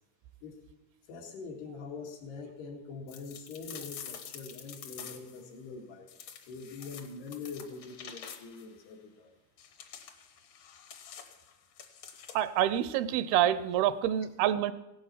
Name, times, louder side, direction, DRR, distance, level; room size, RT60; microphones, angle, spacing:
voice 1, 1.1-6.1 6.5-9.3, left 4 dB, 90° left, 0 dB, 4.0 m, -44 dB
sound 1, 3.1-5.4 6.1-8.7 9.6-12.6, left 8 dB, 65° left, 1.7 m, -47 dB
voice 2, 12.3-14.7, right 11 dB, 80° right, 14 dB, 2.5 m, -27 dB
16.5 x 11.5 x 5.7 m, 0.93 s
omnidirectional pair, 4.5 m